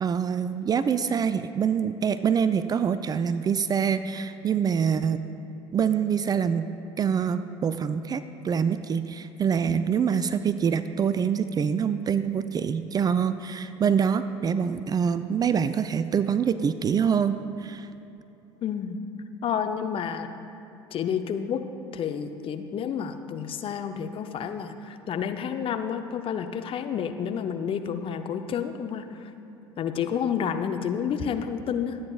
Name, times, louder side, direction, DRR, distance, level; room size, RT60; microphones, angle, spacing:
voice 1, 0.0-5.2 5.7-6.7 7.0-17.9, right 7 dB, 25° right, 12 dB, 0.4 m, -25 dB
voice 2, 9.6-10.1 18.6-19.0 19.4-20.3 20.9-21.7 21.9-29.3 29.8-32.0, left 7 dB, 40° left, 8 dB, 0.7 m, -30 dB
24.0 x 8.7 x 2.4 m, 2.8 s
figure-of-eight pair, 65°, 15 cm